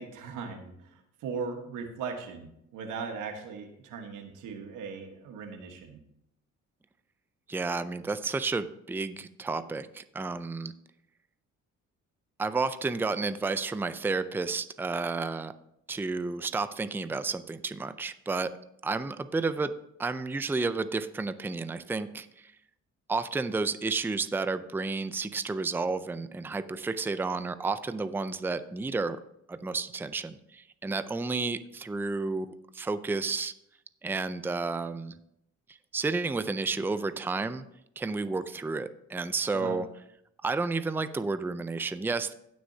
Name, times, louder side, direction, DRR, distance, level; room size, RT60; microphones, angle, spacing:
voice 1, 0.0-6.0 39.5-39.8, right 5 dB, 90° right, 5 dB, 1.4 m, -38 dB
voice 2, 7.5-10.7 12.4-15.5 15.9-18.5 18.8-19.7 20.0-22.5 23.1-29.2 29.5-33.5 34.0-35.1 35.9-37.6 38.0-39.9 40.4-42.3, right 3 dB, 5° right, 12 dB, 0.4 m, -31 dB
17.0 x 6.2 x 2.8 m, 0.79 s
cardioid pair, 90°, 30 cm